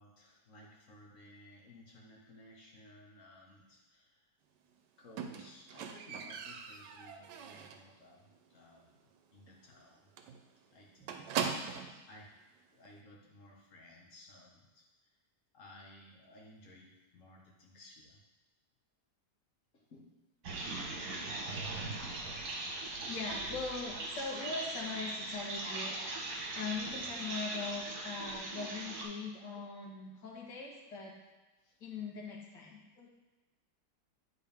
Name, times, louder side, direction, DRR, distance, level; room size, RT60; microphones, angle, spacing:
voice 1, 0.0-4.3 5.0-9.0 9.3-10.1 10.7-12.3 12.7-14.9 15.5-18.2 19.7-20.2 22.0-22.3 22.6-22.8 29.6-29.7 31.6-31.8, left 1 dB, 50° left, -2 dB, 1.5 m, -58 dB
Squeak, 5.2-7.9 8.3-8.7 8.9-9.0 9.4-9.5 9.8-9.9 10.2-12.0 12.8-12.9, right 7 dB, 85° right, 1.2 m, -40 dB
sound 1, 20.4-29.0, right 2 dB, 65° right, 1.6 m, -40 dB
voice 2, 23.1-26.3 26.5-31.1 31.8-33.1, left 4 dB, 85° left, -2 dB, 1.9 m, -41 dB
8.9 x 4.5 x 3.5 m, 1.2 s
omnidirectional pair, 1.8 m